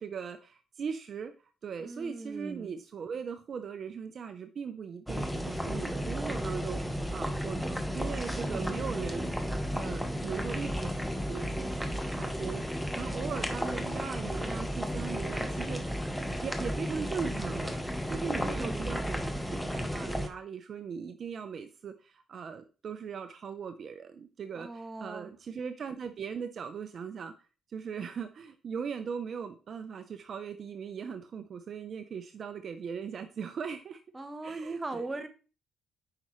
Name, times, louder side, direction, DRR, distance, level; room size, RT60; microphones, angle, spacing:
voice 1, 0.0-1.3 1.6-9.3 9.7-10.9 11.3-15.8 16.4-27.3 27.7-34.0 34.4-35.1, right 6 dB, 55° right, 8 dB, 0.6 m, -39 dB
voice 2, 1.8-2.8 8.4-8.8 18.3-19.0 24.5-25.3 34.1-35.3, right 2 dB, 20° right, 8 dB, 1.1 m, -40 dB
sound 1, 5.1-20.3, equal, ahead, 1.0 m, -33 dB
sound 2, 7.9-14.2, left 3 dB, 50° left, 3.0 m, -58 dB
8.7 x 5.5 x 3.1 m, 0.34 s
cardioid pair, 90°, 0 cm